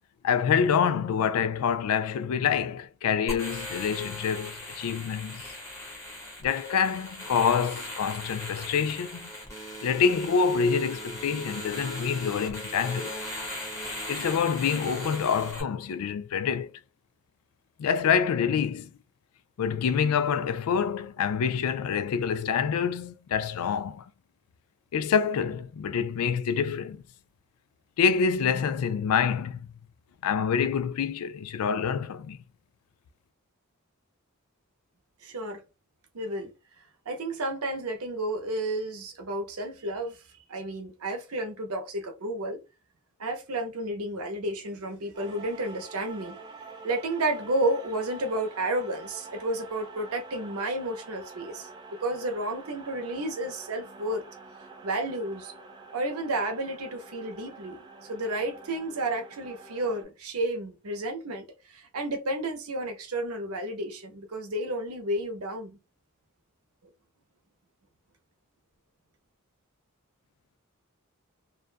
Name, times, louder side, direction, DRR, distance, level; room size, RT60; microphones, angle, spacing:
voice 1, 0.2-5.4 6.4-9.3 9.8-13.2 14.1-16.7 17.8-18.9 19.6-24.0 24.9-27.0 28.0-29.6 30.2-32.4, left 6 dB, 85° left, 0.4 m, -26 dB
sound 1, 3.3-15.6, equal, 15° left, 0.9 m, -38 dB
voice 2, 35.2-35.6 36.1-36.5 37.1-40.2 40.5-42.6 43.2-46.6 46.8-54.3 54.8-55.5 55.9-57.8 58.1-65.8, right 1 dB, 85° right, 0.8 m, -31 dB
sound 2, 45.1-60.0, right 3 dB, 20° right, 0.4 m, -47 dB
2.5 x 2.2 x 2.4 m
head